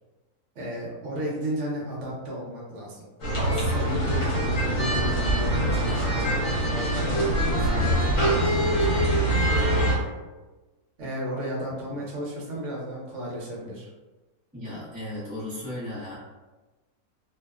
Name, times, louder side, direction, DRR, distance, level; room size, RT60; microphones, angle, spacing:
voice 1, 0.5-3.1 3.3-9.7 11.0-13.9, equal, 60° right, -4 dB, 1.0 m, -34 dB
sound 1, 3.2-10.0, right 1 dB, 60° left, 1.2 m, -23 dB
voice 2, 14.5-16.2, left 1 dB, 10° right, -12 dB, 0.5 m, -35 dB
2.8 x 2.1 x 2.3 m, 1.2 s
omnidirectional pair, 1.6 m